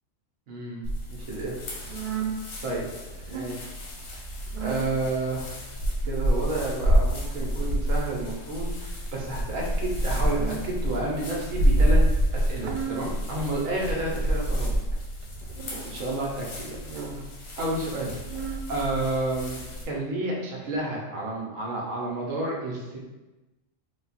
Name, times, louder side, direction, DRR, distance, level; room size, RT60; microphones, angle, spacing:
voice 1, 0.5-1.6 2.6-2.8 3.3-3.6 4.6-5.5 6.0-12.0 12.3-14.8 15.7-16.8 17.6-18.1 18.7-19.6 19.8-23.0, right 2 dB, 90° right, -3 dB, 1.3 m, -30 dB
sound 1, 0.8-19.8, equal, 80° left, 1.2 m, -28 dB
sound 2, 1.8-2.4 3.1-3.5 4.5-4.9 5.9-6.3 7.4-7.9 9.0-9.4 10.1-10.7 11.3-11.8 12.4-13.1 13.9-14.3 15.2-15.8 16.7-17.3 18.0-18.6 19.4-19.9 20.6-20.8, right 7 dB, 70° right, 0.4 m, -37 dB
3.7 x 2.3 x 4.1 m, 1.1 s
omnidirectional pair, 1.3 m